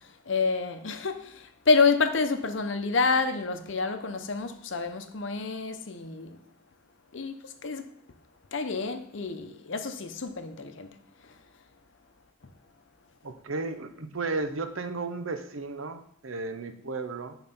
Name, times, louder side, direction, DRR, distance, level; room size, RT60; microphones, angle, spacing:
voice 1, 0.3-1.3 1.7-6.3 7.1-7.4 7.6-7.8 8.5-10.9, left 4 dB, 65° left, 0.8 m, -27 dB
voice 2, 13.2-17.3, right 3 dB, 80° right, 0.8 m, -34 dB
8.8 x 4.0 x 5.4 m
head